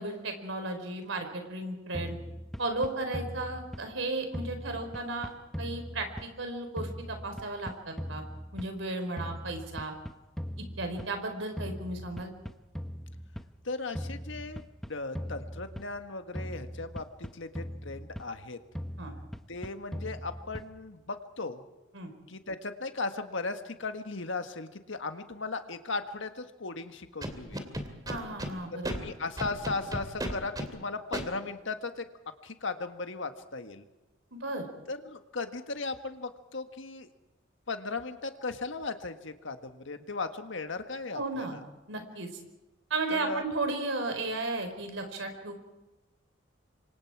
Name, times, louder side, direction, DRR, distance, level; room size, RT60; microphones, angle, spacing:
voice 1, 0.0-2.2 2.6-5.3 5.6-8.2 8.5-9.9 10.6-12.3 19.0-19.1 21.9-22.1 28.1-29.1 34.3-34.7 41.1-41.6 41.9-42.3 42.9-45.5, right 2 dB, 70° right, 6 dB, 4.5 m, -34 dB
sound 1, 1.9-4.0 4.3-6.5 6.8-8.9 9.2-11.3 11.6-13.5 13.9-16.1 16.3-18.4 18.7-20.9, equal, ahead, 0.9 m, -40 dB
voice 2, 13.6-14.6 14.9-18.6 19.5-21.6 22.3-27.6 28.7-32.1 32.4-33.8 34.9-37.1 37.7-41.6 43.1-43.4, left 3 dB, 70° left, 8 dB, 1.7 m, -37 dB
Scratching (performance technique), 27.2-28.5 28.8-29.0 29.4-30.7 31.1-31.2, right 1 dB, 20° right, 2.7 m, -34 dB
27.5 x 24.5 x 4.8 m, 1.1 s
head